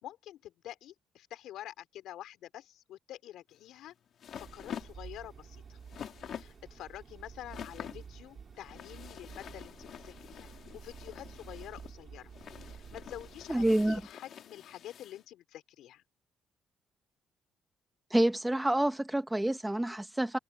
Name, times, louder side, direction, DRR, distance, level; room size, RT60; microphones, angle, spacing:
voice 1, 0.0-3.9 4.3-5.8 6.4-10.5 10.7-12.3 12.7-16.0, left 13 dB, 85° left, 3.9 m, -47 dB
sound 1, 3.5-15.2, left 9 dB, 65° left, 4.4 m, -48 dB
sound 2, 4.3-14.1, right 6 dB, 50° right, 2.9 m, -51 dB
voice 2, 13.5-14.0 18.1-20.4, right 1 dB, 10° right, 1.5 m, -28 dB
cardioid pair, 90°, 0 cm